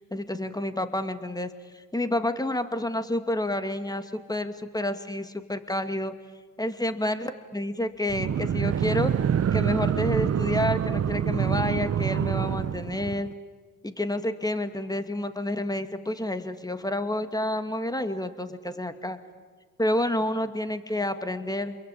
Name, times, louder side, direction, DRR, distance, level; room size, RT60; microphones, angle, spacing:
voice 1, 0.0-6.1 6.6-9.1 9.5-13.3 13.8-19.2 19.8-21.8, left 1 dB, 10° left, 9 dB, 2.3 m, -29 dB
sound 1, 8.1-13.3, right 8 dB, 35° right, 0.8 m, -26 dB
28.0 x 22.5 x 8.8 m, 1.5 s
supercardioid pair, 65°, 42 cm